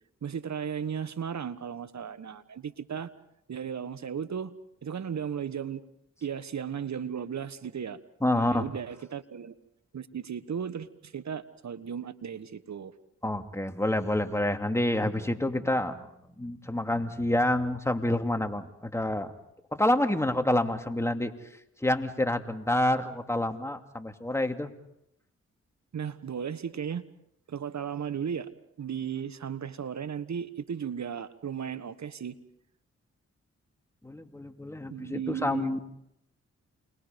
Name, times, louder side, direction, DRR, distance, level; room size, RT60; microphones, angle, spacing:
voice 1, 0.2-3.1 3.5-5.8 6.2-8.0 8.3-9.6 9.9-12.9 25.9-27.1 27.5-28.5 28.8-32.4 34.9-35.8, right 7 dB, 65° right, 13 dB, 1.5 m, -35 dB
voice 2, 8.2-8.6 13.2-19.3 19.7-21.3 21.8-24.7 34.0-35.8, left 1 dB, 10° left, 5 dB, 2.7 m, -28 dB
29.0 x 22.0 x 5.3 m, 0.79 s
supercardioid pair, 40°, 30 cm